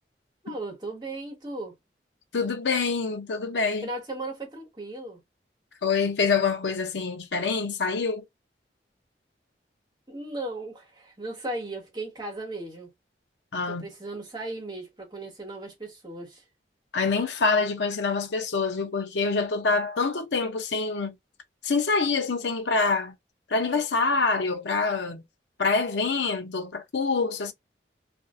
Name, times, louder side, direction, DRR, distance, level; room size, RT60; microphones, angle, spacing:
voice 1, 0.4-1.7 3.8-5.2 10.1-12.9 13.7-16.4, right 2 dB, 25° right, 1.3 m, -36 dB
voice 2, 2.3-3.9 5.8-8.2 13.5-13.8 16.9-21.1 21.6-23.1 23.5-25.2 25.6-27.5, left 4 dB, 85° left, 0.6 m, -26 dB
2.6 x 2.4 x 2.4 m
head